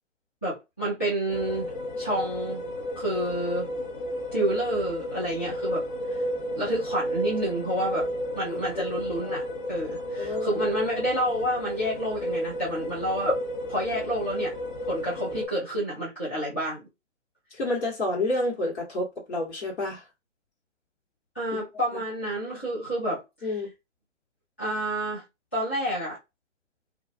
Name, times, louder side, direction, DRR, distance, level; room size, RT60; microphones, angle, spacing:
voice 1, 0.4-1.7 2.0-2.6 3.0-3.7 4.3-5.8 6.1-6.2 6.5-8.1 8.3-9.4 9.7-13.4 13.7-14.5 14.8-16.9 21.3-23.6 24.6-25.2 25.5-26.2, equal, 10° left, 0.3 m, -29 dB
sound 1, 1.3-15.5, equal, 40° left, 0.7 m, -32 dB
voice 2, 10.2-10.6 17.6-20.0 21.9-22.0 23.4-23.7, left 2 dB, 60° left, 1.2 m, -29 dB
2.3 x 2.3 x 2.3 m
figure-of-eight pair, 125°, 37 cm